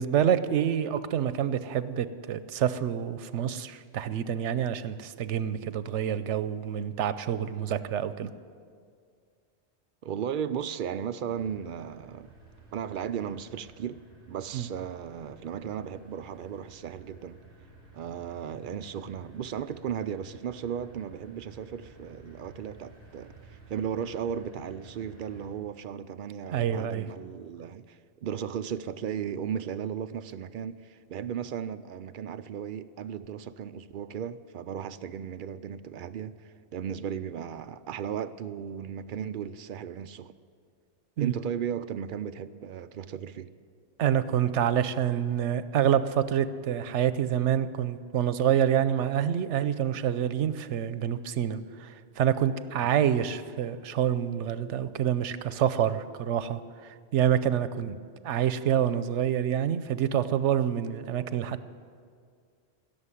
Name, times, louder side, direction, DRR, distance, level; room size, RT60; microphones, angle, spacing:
voice 1, 0.0-8.3 14.5-14.7 26.5-27.0 41.2-41.3 44.0-57.9 58.2-61.7, right 9 dB, 85° right, 1.0 m, -27 dB
voice 2, 10.0-12.3 12.7-14.0 14.3-17.4 17.9-40.3 41.2-43.5 57.9-58.0, right 8 dB, 60° right, 0.6 m, -36 dB
sound 1, 11.3-25.5, right 2 dB, 10° right, 4.9 m, -53 dB
16.5 x 7.0 x 9.8 m
omnidirectional pair, 1.2 m